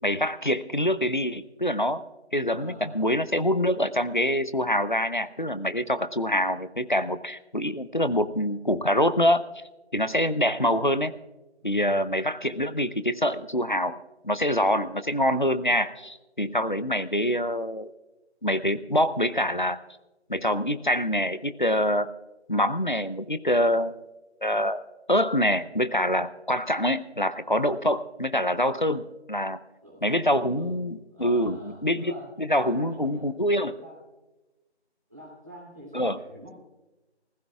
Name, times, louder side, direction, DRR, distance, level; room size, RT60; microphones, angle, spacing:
voice 1, 0.0-2.0 2.3-9.4 9.9-11.1 11.6-14.0 14.2-17.9 18.4-19.8 20.3-22.1 22.5-24.0 24.4-24.8 25.1-29.6 30.0-32.1 32.4-33.8 35.9-36.2, equal, 45° left, 14 dB, 0.6 m, -25 dB
voice 2, 2.6-3.2 11.6-11.9 29.8-30.8 31.1-33.3 33.7-34.0 35.1-36.6, equal, 15° right, -6 dB, 2.7 m, -45 dB
28.0 x 15.5 x 2.3 m, 1.1 s
figure-of-eight pair, 180°, 34 cm